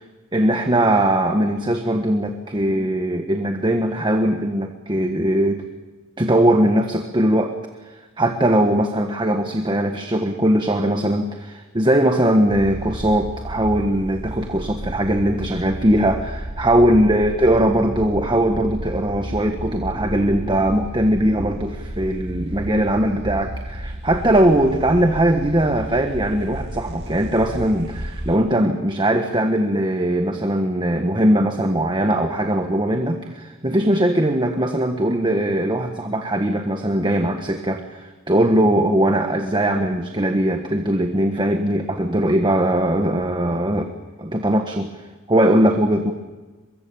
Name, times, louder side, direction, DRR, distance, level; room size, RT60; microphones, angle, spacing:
voice 1, 0.3-5.6 6.2-7.5 8.2-43.9 44.2-44.9 45.3-46.1, right 1 dB, 25° right, 5 dB, 1.4 m, -20 dB
sound 1, 12.5-28.4, equal, 55° right, 2.7 m, -32 dB
23.5 x 23.5 x 7.1 m, 1.3 s
head